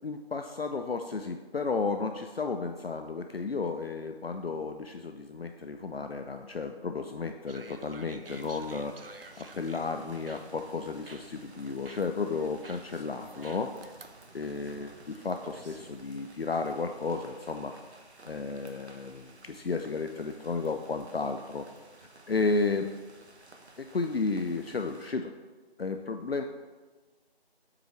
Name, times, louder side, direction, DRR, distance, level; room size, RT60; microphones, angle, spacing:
voice 1, 0.0-13.7 14.3-17.7 18.2-21.7 22.3-22.9 23.8-25.3 25.8-26.4, left 4 dB, 65° left, 6 dB, 0.5 m, -33 dB
sound 1, 7.5-16.0, right 3 dB, 60° right, 0.5 m, -52 dB
sound 2, 8.2-25.1, right 2 dB, 90° right, 1.0 m, -55 dB
7.5 x 6.1 x 3.1 m, 1.3 s
figure-of-eight pair, 180°, 32 cm